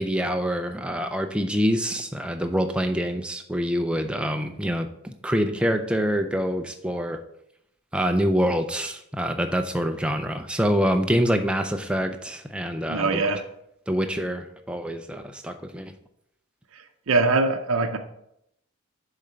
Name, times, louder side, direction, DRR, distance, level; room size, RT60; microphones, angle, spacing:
voice 1, 0.0-7.2 7.9-13.2 13.9-15.9, equal, 5° right, 5 dB, 0.4 m, -26 dB
voice 2, 12.9-13.4 17.1-18.0, right 3 dB, 70° right, 5 dB, 0.6 m, -22 dB
6.9 x 3.8 x 5.6 m, 0.77 s
head